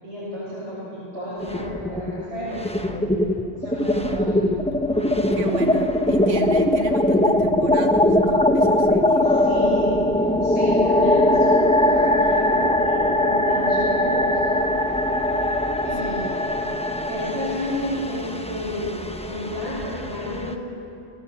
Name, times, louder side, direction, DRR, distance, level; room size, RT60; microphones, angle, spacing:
voice 1, 0.0-3.2 3.6-4.3 9.2-9.9 10.4-14.6 15.8-16.4 17.0-20.6, left 1 dB, 65° right, -10 dB, 7.0 m, -31 dB
sound 1, 1.4-2.2 2.5-20.5, left 1 dB, 5° left, 0.8 m, -21 dB
voice 2, 5.3-9.3, right 5 dB, 85° right, 5 dB, 1.9 m, -33 dB
22.5 x 18.5 x 7.4 m, 2.6 s
omnidirectional pair, 1.2 m